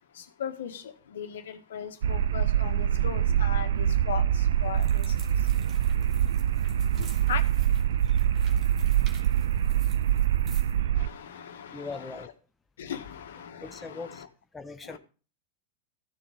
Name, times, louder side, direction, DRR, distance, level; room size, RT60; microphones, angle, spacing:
voice 1, 0.1-5.5 7.0-7.4 10.9-12.2 12.8-14.3 14.8-15.0, left 8 dB, 60° left, 1.6 m, -38 dB
sound 1, 2.0-11.1, right 10 dB, 60° right, 0.5 m, -25 dB
sound 2, 4.7-10.8, right 4 dB, 30° right, 3.0 m, -51 dB
voice 2, 11.7-12.3 13.6-14.2 14.5-15.0, left 3 dB, 10° left, 0.8 m, -40 dB
14.5 x 7.2 x 5.2 m
figure-of-eight pair, 90°, 0 cm